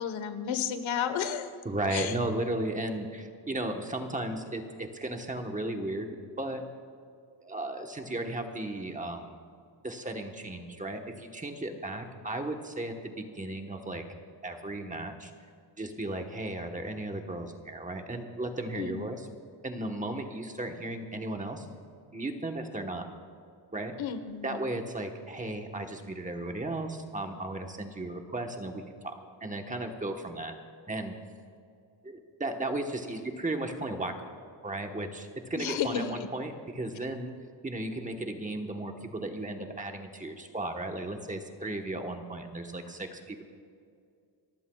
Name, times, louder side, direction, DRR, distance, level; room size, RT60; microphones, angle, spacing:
voice 1, 0.0-1.5 1.9-2.1 18.8-19.1 24.0-24.6 35.5-36.2, left 8 dB, 90° left, 10 dB, 1.2 m, -32 dB
voice 2, 1.6-6.6 7.4-9.3 9.8-14.0 14.4-15.3 15.8-19.2 19.6-21.7 22.1-23.1 23.7-23.9 24.4-29.1 29.4-30.5 30.9-31.1 32.0-37.3 37.6-43.4, right 2 dB, 15° right, 4 dB, 1.1 m, -35 dB
29.0 x 15.0 x 2.3 m, 2.3 s
wide cardioid pair, 160°, 45 cm